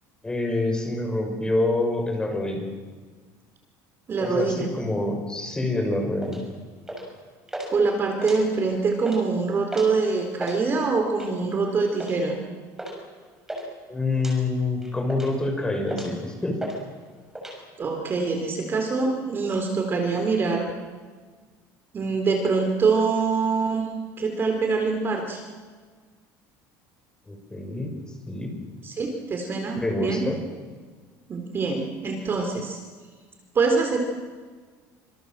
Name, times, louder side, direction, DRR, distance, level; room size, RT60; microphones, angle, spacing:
voice 1, 0.2-2.6 4.2-6.4 13.9-16.6 27.3-27.9 28.3-28.5 29.7-30.4, left 2 dB, 10° left, 3 dB, 6.3 m, -26 dB
voice 2, 4.1-4.7 7.7-12.4 17.8-20.7 21.9-23.9 24.2-25.4 28.8-30.2 31.3-32.8 33.5-34.0, right 4 dB, 30° right, 4 dB, 4.0 m, -24 dB
sound 1, 6.2-6.4 6.9-7.2 7.5-7.7 8.1-8.7 9.0-9.2 9.7-10.0 10.3-10.6 11.1-11.4 12.0-12.2 12.8-13.0 13.2-13.7 14.2-14.4 14.8-15.4 15.9-16.2 16.6-16.8 17.0-17.6, right 1 dB, 5° right, 7.0 m, -35 dB
27.5 x 26.5 x 7.7 m, 1.5 s
cardioid pair, 145°, 8 cm